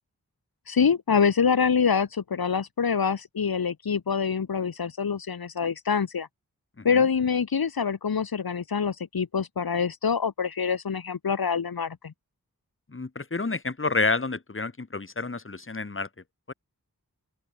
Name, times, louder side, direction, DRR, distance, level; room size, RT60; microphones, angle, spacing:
voice 1, 0.7-6.3 6.8-12.1, left 6 dB, 80° left, 0.8 m, -25 dB
voice 2, 12.9-16.1 16.5-16.6, left 3 dB, 35° left, 1.2 m, -29 dB
open air
wide cardioid pair, 45°, 36 cm